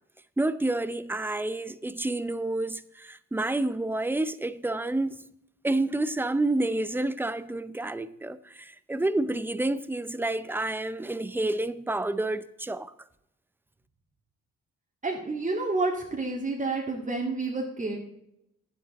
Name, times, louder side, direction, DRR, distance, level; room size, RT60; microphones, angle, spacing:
voice 1, 0.4-5.3 5.6-12.9, right 2 dB, 5° right, 0.5 m, -29 dB
voice 2, 15.0-18.0, right 3 dB, 25° right, 1.9 m, -29 dB
10.5 x 9.0 x 4.0 m
cardioid pair, 90°, 30 cm